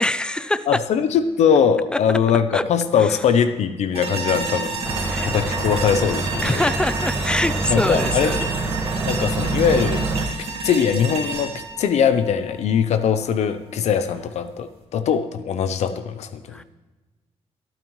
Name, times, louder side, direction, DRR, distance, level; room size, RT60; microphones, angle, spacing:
voice 1, 0.0-0.7 2.5-2.6 3.0-3.2 5.1-5.3 6.4-8.4 16.5-16.6, left 1 dB, 10° left, 14 dB, 0.4 m, -24 dB
voice 2, 0.7-4.8 5.2-6.6 7.7-8.7 9.1-10.1 10.6-16.6, left 7 dB, 75° left, 10 dB, 0.7 m, -21 dB
sound 1, 3.9-13.0, right 4 dB, 55° right, 2.3 m, -30 dB
sound 2, 4.8-10.3, right 3 dB, 25° right, 1.5 m, -26 dB
24.5 x 9.0 x 3.1 m, 1.2 s
wide cardioid pair, 160°, 12 cm